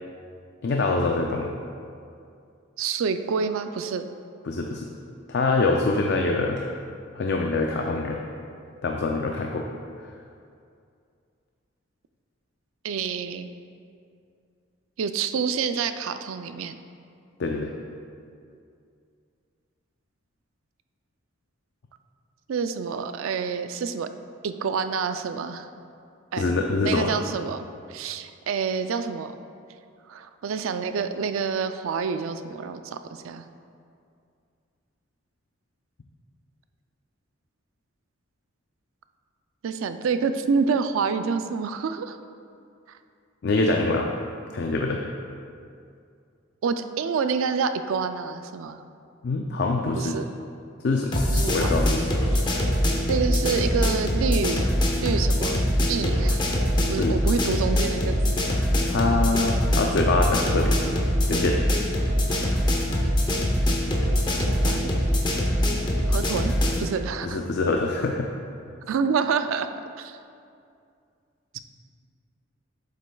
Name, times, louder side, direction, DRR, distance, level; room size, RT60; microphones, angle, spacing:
voice 1, 0.6-1.5 4.5-4.9 5.3-6.6 7.1-8.2 8.8-9.7 17.4-17.7 26.3-27.1 43.4-44.1 44.5-45.0 49.2-50.2 50.8-51.2 51.5-52.0 57.0-57.2 58.9-60.8 61.3-61.6 67.2-68.3, left 3 dB, 55° left, 2 dB, 0.4 m, -24 dB
voice 2, 2.8-4.1 12.8-13.5 15.0-16.8 22.5-24.1 24.4-25.7 26.3-26.5 26.8-27.6 27.9-29.3 30.1-33.4 39.6-42.2 46.6-48.8 50.0-50.3 51.3-51.8 53.1-54.6 55.0-56.4 56.8-58.5 64.4-64.9 66.1-66.5 66.8-67.4 68.9-69.7 70.0-70.2 71.5-71.6, right 5 dB, 85° right, 9 dB, 0.4 m, -27 dB
sound 1, 51.1-66.9, equal, 20° left, 0.7 m, -23 dB
8.4 x 7.5 x 2.3 m, 2.4 s
head